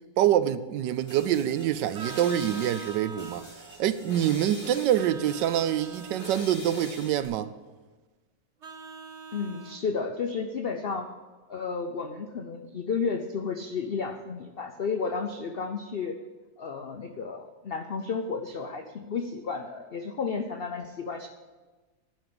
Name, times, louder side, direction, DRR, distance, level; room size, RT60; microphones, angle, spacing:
voice 1, 0.2-3.5 3.8-7.5, right 11 dB, 80° right, 1.2 m, -26 dB
sound 1, 0.8-7.2, left 1 dB, 60° left, 5.5 m, -44 dB
Vehicle horn car horn honking, 1.9-3.5 5.0-6.5 8.6-9.8, right 5 dB, 45° right, 1.3 m, -42 dB
voice 2, 9.3-11.1 11.5-16.2 16.6-21.3, left 5 dB, 80° left, 0.5 m, -32 dB
11.5 x 5.4 x 8.7 m
omnidirectional pair, 1.9 m